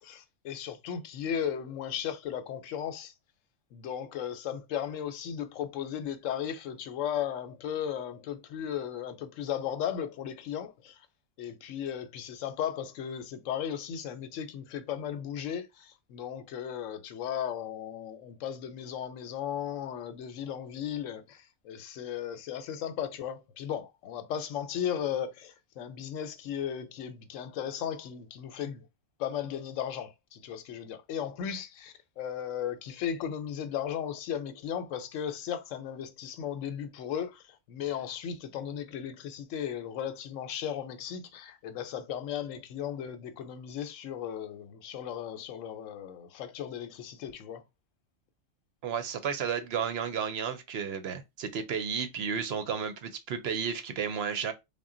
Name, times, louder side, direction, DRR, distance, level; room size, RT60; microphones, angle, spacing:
voice 1, 0.0-3.1 3.7-11.1 11.4-28.9 29.2-47.6, left 9 dB, 90° left, 1.0 m, -36 dB
voice 2, 48.8-54.5, right 7 dB, 65° right, 0.8 m, -32 dB
3.7 x 2.1 x 3.7 m
omnidirectional pair, 1.3 m